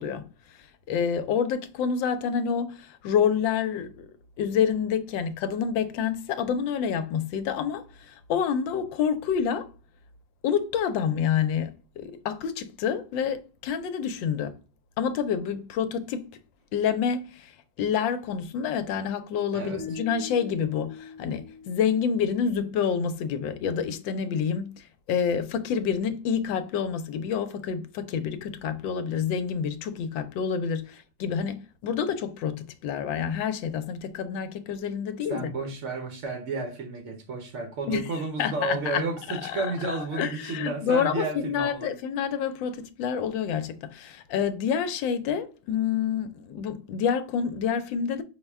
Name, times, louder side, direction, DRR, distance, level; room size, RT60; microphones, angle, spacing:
voice 1, 0.0-4.1 4.4-9.7 10.4-14.6 15.0-16.3 16.7-35.5 37.9-39.0 39.3-48.2, left 7 dB, 80° left, 1.3 m, -28 dB
sound 1, 19.8-22.9, left 5 dB, 90° right, 1.7 m, -43 dB
voice 2, 35.3-41.9, right 3 dB, 60° right, 0.8 m, -32 dB
5.6 x 2.1 x 3.4 m
omnidirectional pair, 2.1 m